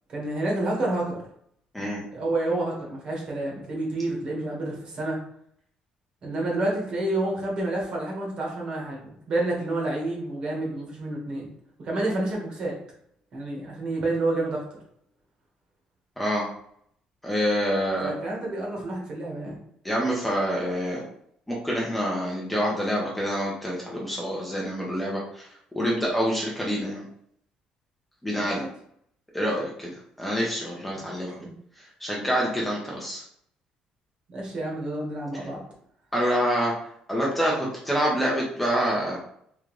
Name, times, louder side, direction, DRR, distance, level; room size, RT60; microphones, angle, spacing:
voice 1, 0.1-1.2 2.1-5.2 6.2-11.5 11.8-12.8 13.3-14.6 18.0-19.6 28.3-28.7 31.0-31.1 31.4-31.5 34.3-35.6, right 2 dB, 40° right, -2 dB, 1.5 m, -29 dB
voice 2, 16.2-16.5 17.2-18.1 19.8-21.0 21.5-25.5 25.7-27.1 28.2-28.6 29.3-29.9 30.2-31.4 32.0-33.2 35.3-35.5 36.1-36.7 37.1-39.2, equal, 5° left, -4 dB, 0.7 m, -26 dB
3.7 x 3.1 x 3.1 m, 0.67 s
cardioid pair, 165°, 2 cm